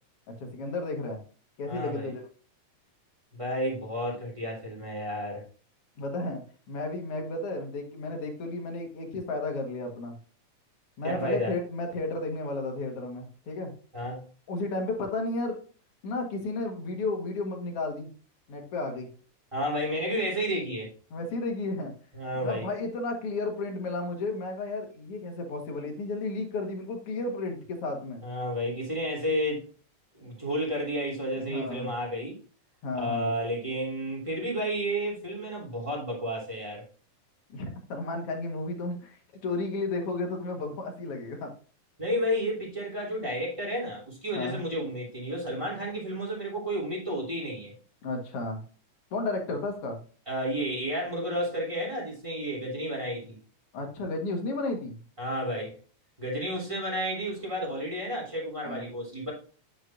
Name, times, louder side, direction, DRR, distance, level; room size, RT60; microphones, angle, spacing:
voice 1, 0.3-1.2 1.6-2.3 6.0-10.2 11.0-13.7 14.5-15.6 16.0-18.1 18.5-19.1 19.8-20.2 21.1-21.9 22.3-28.2 31.5-31.9 32.8-33.4 37.5-41.5 44.4-44.6 48.0-48.6 49.1-50.0 53.7-55.0 58.6-58.9, left 2 dB, 55° left, 3 dB, 2.4 m, -33 dB
voice 2, 1.7-2.1 3.3-5.4 11.0-11.5 13.9-14.3 19.5-20.9 22.1-22.7 28.2-29.6 30.2-32.4 33.0-36.8 42.0-47.7 50.3-53.3 55.2-55.7 56.2-59.3, equal, 10° right, -4 dB, 3.2 m, -31 dB
9.2 x 6.2 x 2.6 m, 0.39 s
omnidirectional pair, 3.4 m